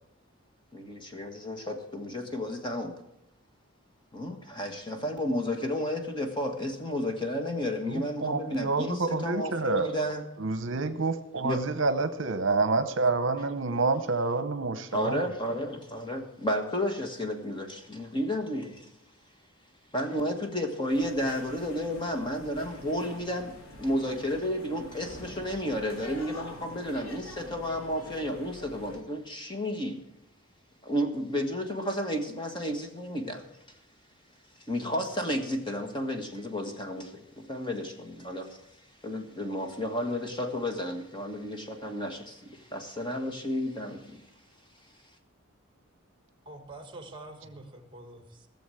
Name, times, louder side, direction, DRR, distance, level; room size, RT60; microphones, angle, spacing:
voice 1, 0.7-3.0 4.1-10.2 11.4-11.6 14.9-18.9 19.9-30.0 30.8-33.4 34.7-38.6 39.0-44.2, left 1 dB, 20° left, 5 dB, 1.5 m, -32 dB
voice 2, 7.9-9.9 10.4-15.3, right 3 dB, 60° right, 11 dB, 0.8 m, -28 dB
airport terminal gate lounge Dorval Montreal Canada, 20.9-29.0, left 1 dB, 85° left, 2.6 m, -46 dB
voice 3, 46.4-48.5, right 2 dB, 20° right, 7 dB, 1.5 m, -46 dB
16.5 x 7.1 x 7.7 m, 0.82 s
head